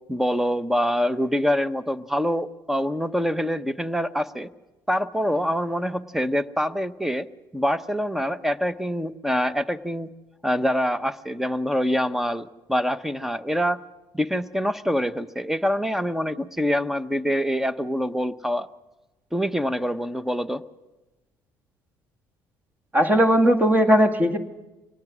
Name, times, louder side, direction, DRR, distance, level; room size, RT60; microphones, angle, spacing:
voice 1, 0.1-4.5 4.9-7.3 7.5-10.1 10.4-13.8 14.1-18.7 19.3-20.6, equal, 5° right, 13 dB, 0.8 m, -25 dB
voice 2, 22.9-24.4, equal, 20° right, 6 dB, 2.0 m, -18 dB
24.5 x 19.0 x 6.2 m, 1.1 s
cardioid pair, 95°, 9 cm